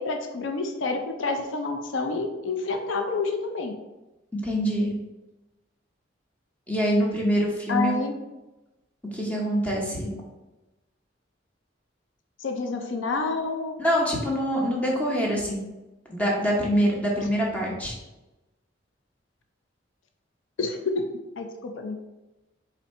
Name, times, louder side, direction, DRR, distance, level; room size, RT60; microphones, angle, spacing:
voice 1, 0.0-3.7 7.7-8.1 12.4-13.8 20.6-21.0 21.4-22.0, left 3 dB, 85° left, 5 dB, 0.5 m, -28 dB
voice 2, 4.4-4.9 6.7-7.9 9.1-10.1 13.8-15.6 16.1-18.0, equal, 10° left, -3 dB, 0.9 m, -25 dB
4.2 x 2.7 x 4.2 m, 1.0 s
head